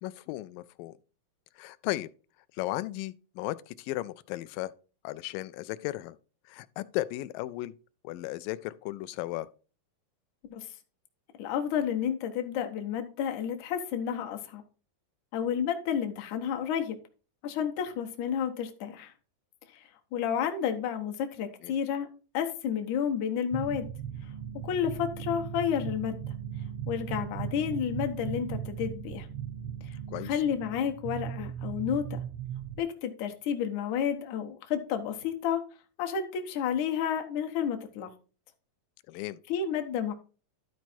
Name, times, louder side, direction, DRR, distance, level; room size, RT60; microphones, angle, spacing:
voice 1, 0.0-1.0 1.6-2.1 2.5-4.7 5.0-6.2 6.5-7.7 8.0-9.5 21.6-21.8 30.1-30.4 39.1-39.4, left 17 dB, 90° left, 2.2 m, -35 dB
voice 2, 11.4-14.6 15.3-17.0 17.4-19.1 19.7-19.8 20.1-22.1 22.3-23.9 24.6-26.2 26.9-29.3 29.9-30.0 30.2-32.2 32.8-35.6 36.0-38.1 39.5-40.1, left 8 dB, 70° left, 2.3 m, -31 dB
sound 1, 23.5-32.8, right 9 dB, 80° right, 1.2 m, -38 dB
12.5 x 4.6 x 4.3 m
omnidirectional pair, 3.9 m